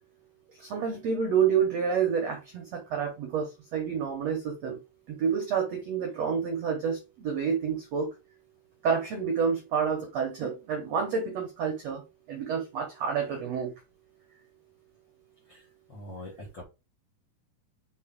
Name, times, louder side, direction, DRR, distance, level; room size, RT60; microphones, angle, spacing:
voice 1, 0.6-4.8 5.1-8.1 8.8-13.7, right 6 dB, 70° right, 1.5 m, -29 dB
voice 2, 15.9-16.6, left 1 dB, 60° left, 1.2 m, -42 dB
5.5 x 4.7 x 3.7 m
omnidirectional pair, 4.6 m